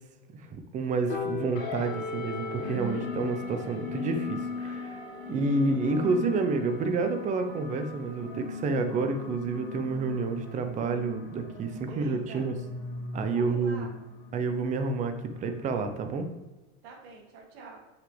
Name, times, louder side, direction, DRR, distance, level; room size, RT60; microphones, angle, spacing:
voice 1, 0.5-5.0 5.3-12.5 13.1-13.9 14.3-16.3, right 3 dB, 25° right, 7 dB, 0.7 m, -29 dB
Piano, 1.1-7.4, left 6 dB, 25° left, 2.0 m, -42 dB
sound 1, 1.5-16.3, left 3 dB, 70° left, 2.6 m, -39 dB
voice 2, 5.3-5.8 11.9-12.5 13.3-13.9 16.8-17.8, right 3 dB, 75° right, -1 dB, 2.4 m, -46 dB
7.4 x 6.3 x 3.3 m, 1.1 s
supercardioid pair, 155°, 30 cm